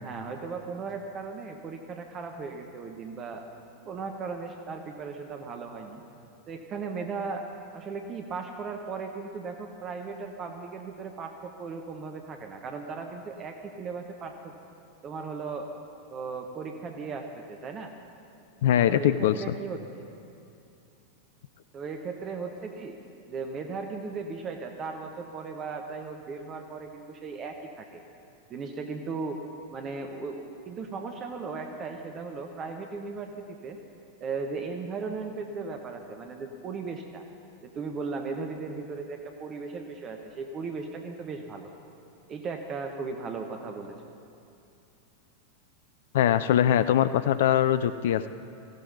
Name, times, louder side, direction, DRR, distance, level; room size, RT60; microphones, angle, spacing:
voice 1, 0.0-3.4 3.9-6.0 6.5-7.5 7.7-14.5 15.0-15.7 16.1-17.9 18.9-20.1 21.7-23.0 23.3-28.0 28.5-29.4 29.7-33.8 34.2-37.3 37.6-41.7 42.3-43.9, right 4 dB, 30° right, 4 dB, 1.1 m, -37 dB
voice 2, 18.6-19.5 46.1-48.3, left 10 dB, 55° left, 13 dB, 0.4 m, -22 dB
18.5 x 15.0 x 4.1 m, 2.7 s
figure-of-eight pair, 90°, 0 cm